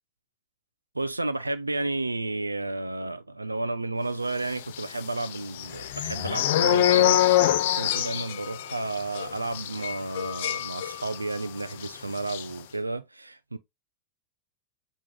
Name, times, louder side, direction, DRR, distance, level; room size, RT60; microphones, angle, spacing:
voice 1, 0.9-13.6, right 2 dB, 80° right, 0.5 m, -32 dB
sound 1, 4.7-11.4 11.7-11.9 12.2-12.4, left 12 dB, 55° left, 0.4 m, -25 dB
6.0 x 2.4 x 3.3 m
figure-of-eight pair, 90°, 0 cm